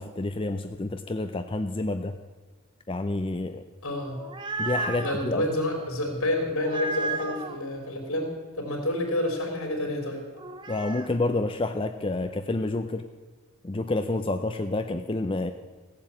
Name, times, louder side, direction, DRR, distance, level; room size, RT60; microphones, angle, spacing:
voice 1, 0.0-2.1 2.9-3.6 4.6-5.4 10.7-13.0 13.6-15.5, left 2 dB, 25° left, 8 dB, 0.5 m, -29 dB
voice 2, 3.8-4.2 5.0-10.2, left 1 dB, 70° left, 2 dB, 3.2 m, -29 dB
sound 1, 4.0-5.2 6.6-7.6 10.4-11.1, right 3 dB, 20° right, 0.7 m, -33 dB
16.0 x 7.5 x 8.6 m, 1.4 s
head